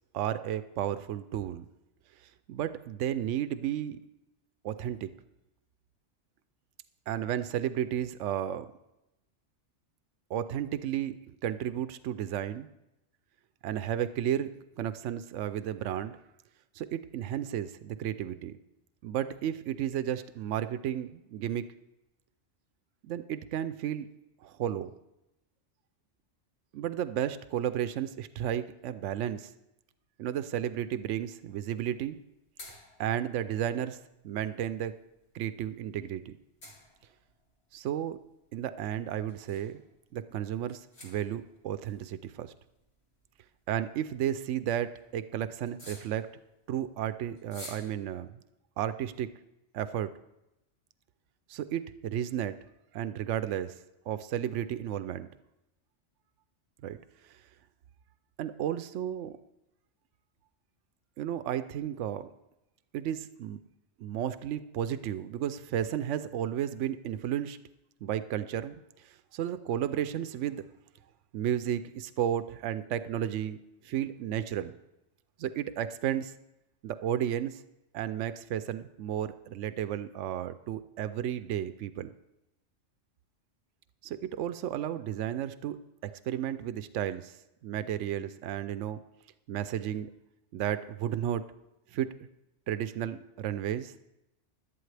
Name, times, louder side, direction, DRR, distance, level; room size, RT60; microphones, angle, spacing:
voice 1, 0.1-1.7 2.5-4.0 4.6-5.1 7.1-8.7 10.3-12.7 13.6-14.5 14.8-16.2 16.8-18.6 19.0-21.6 23.0-24.1 24.4-24.9 26.7-29.5 30.2-32.2 33.0-34.0 34.2-34.9 35.3-36.4 37.7-38.2 38.5-39.8 40.1-42.5 43.7-46.3 46.7-48.4 48.8-49.3 49.7-50.1 51.5-52.6 52.9-53.8 54.1-55.3 56.8-57.0 58.4-59.4 61.2-62.3 62.9-63.6 64.0-67.6 68.0-68.8 69.3-70.6 71.3-73.6 73.8-74.7 75.4-76.3 76.8-77.6 77.9-82.1 84.0-85.8 86.2-87.4 87.6-89.0 89.5-90.1 90.5-91.4 91.9-92.1 92.7-93.9, right 10 dB, 80° right, 12 dB, 0.9 m, -33 dB
sound 1, 31.2-47.8, left 2 dB, 60° left, 2.5 m, -55 dB
17.5 x 11.5 x 3.3 m, 0.91 s
omnidirectional pair, 1.2 m